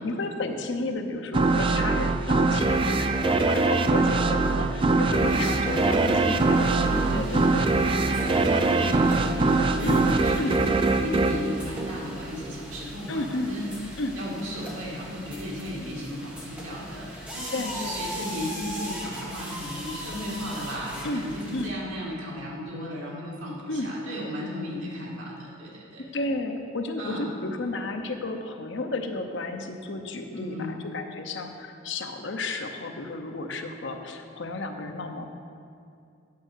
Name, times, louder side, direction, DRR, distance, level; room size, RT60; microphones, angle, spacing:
voice 1, 0.0-6.7 7.1-7.7 9.8-10.1 10.4-10.6 13.1-13.5 14.0-14.2 17.5-18.0 21.0-21.2 21.5-21.7 23.7-23.9 26.0-35.3, left 2 dB, 60° left, 5 dB, 0.7 m, -32 dB
sound 1, 1.3-12.5, right 3 dB, 25° right, 0.3 m, -23 dB
voice 2, 5.1-6.3 6.7-26.0 27.0-27.4 30.3-30.7, left 1 dB, 75° right, -4 dB, 2.3 m, -35 dB
sound 2, 5.2-21.7, equal, 5° right, 1.2 m, -40 dB
8.6 x 6.4 x 6.3 m, 2.5 s
head